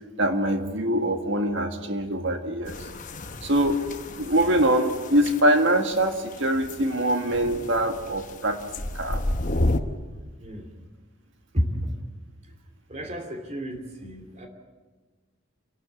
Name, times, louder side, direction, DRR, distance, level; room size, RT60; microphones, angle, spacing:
voice 1, 0.2-2.8 3.4-3.8 4.2-8.6 8.9-9.2, right 1 dB, 60° right, 5 dB, 1.9 m, -23 dB
sound 1, 2.7-9.8, left 1 dB, 35° left, 1.0 m, -32 dB
voice 2, 11.5-11.9 12.9-14.5, equal, 30° right, 3 dB, 2.7 m, -31 dB
28.0 x 12.0 x 8.5 m, 1.4 s
head